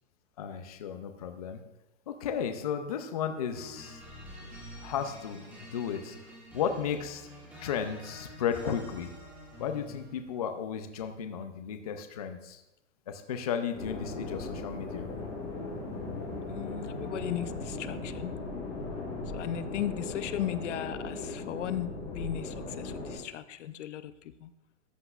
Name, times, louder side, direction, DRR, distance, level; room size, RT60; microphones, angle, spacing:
voice 1, 0.4-1.6 2.1-4.0 4.8-6.2 6.5-7.3 7.6-9.1 9.6-12.6 13.1-15.1, left 7 dB, 35° left, 7 dB, 0.4 m, -34 dB
sound 1, 3.5-10.2, equal, 5° right, 2.0 m, -47 dB
sound 2, 13.7-23.1, left 2 dB, 15° left, 1.6 m, -38 dB
voice 2, 16.5-18.3 19.3-24.5, left 11 dB, 75° left, 14 dB, 0.6 m, -36 dB
13.5 x 7.9 x 2.4 m, 0.92 s
supercardioid pair, 175°, 36 cm